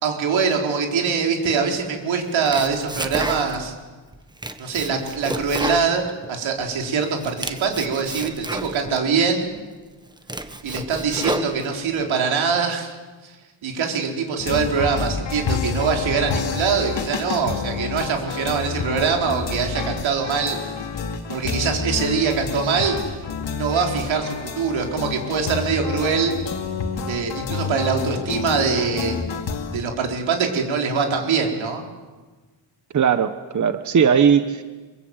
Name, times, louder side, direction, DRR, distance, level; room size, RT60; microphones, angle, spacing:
voice 1, 0.0-3.7 4.6-9.5 10.6-13.0 13.2-13.4 13.6-20.6 21.3-23.0 23.5-26.3 27.1-29.1 29.7-31.8, right 5 dB, 90° right, 2 dB, 4.5 m, -23 dB
Domestic sounds home sounds, 2.2-3.8 4.1-6.7 7.0-9.0 9.6-9.7 10.1-12.0, right 1 dB, 10° right, 1.4 m, -31 dB
sound 1, 14.4-29.8, left 5 dB, 70° left, 2.6 m, -28 dB
voice 2, 32.9-34.6, right 7 dB, 40° right, 10 dB, 1.1 m, -18 dB
25.5 x 23.5 x 8.1 m, 1.3 s
cardioid pair, 120°, 45 cm